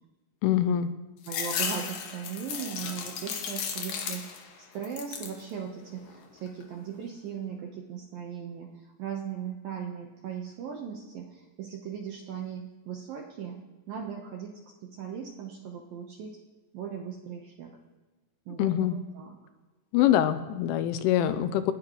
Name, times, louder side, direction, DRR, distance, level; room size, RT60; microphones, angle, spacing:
voice 1, 0.4-0.9 18.6-18.9 19.9-21.7, left 11 dB, 85° left, 11 dB, 3.1 m, -24 dB
sound 1, 1.2-4.5 4.8-5.4 5.9-6.6, left 7 dB, 65° left, 2.3 m, -35 dB
voice 2, 1.3-4.5 4.7-13.6 13.9-14.5 14.8-16.4 16.7-17.7 18.5-19.4, right 7 dB, 75° right, 0 dB, 2.1 m, -38 dB
29.5 x 13.0 x 3.1 m, 1.3 s
omnidirectional pair, 5.7 m